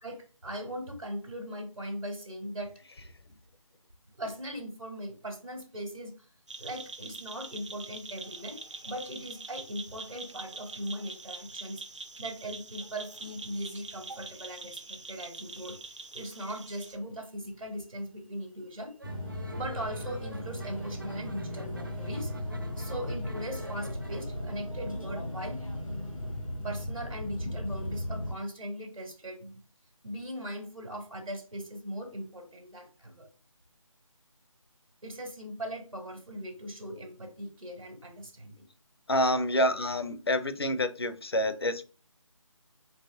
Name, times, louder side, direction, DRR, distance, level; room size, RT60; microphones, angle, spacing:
voice 1, 0.0-2.8 4.2-6.3 6.6-11.8 12.2-15.8 16.1-18.9 19.5-22.3 22.8-25.6 26.6-29.6 30.0-33.3 35.0-38.6, equal, 75° right, 4 dB, 1.5 m, -39 dB
sound 1, 6.5-17.0, right 3 dB, 60° right, 0.7 m, -44 dB
sound 2, 19.0-28.4, left 1 dB, 85° left, 1.9 m, -36 dB
sound 3, 19.0-24.2, right 2 dB, 40° right, 0.4 m, -48 dB
voice 2, 39.1-41.8, left 1 dB, 50° left, 11 dB, 0.6 m, -27 dB
4.1 x 3.2 x 3.5 m, 0.34 s
figure-of-eight pair, 155°, 17 cm